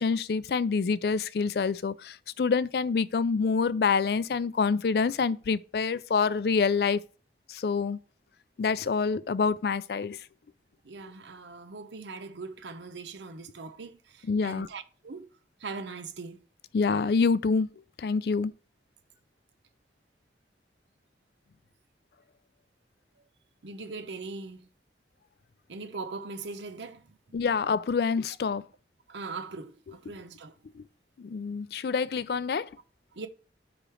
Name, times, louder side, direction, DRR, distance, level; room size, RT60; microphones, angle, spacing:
voice 1, 0.0-7.0 7.5-8.0 8.6-10.2 14.3-14.7 16.7-17.7 18.0-18.5 27.3-28.6 30.8-30.9 31.2-32.7, left 5 dB, 65° left, 0.4 m, -26 dB
voice 2, 10.8-15.3 15.6-16.4 23.6-24.7 25.7-27.1 29.1-30.5 33.1-33.3, right 4 dB, 85° right, 0.7 m, -40 dB
5.0 x 5.0 x 5.6 m
head